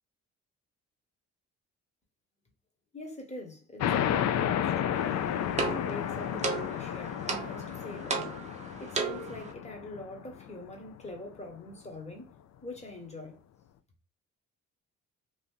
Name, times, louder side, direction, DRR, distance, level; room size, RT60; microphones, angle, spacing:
voice 1, 2.9-5.2 5.7-8.4 8.8-12.3 12.6-13.4, left 2 dB, 20° left, 1.1 m, -44 dB
sound 1, 3.8-11.0, left 10 dB, 65° left, 0.4 m, -32 dB
sound 2, 4.9-9.5, right 4 dB, 25° right, 0.7 m, -35 dB
3.0 x 2.5 x 3.5 m
cardioid pair, 90°, 30 cm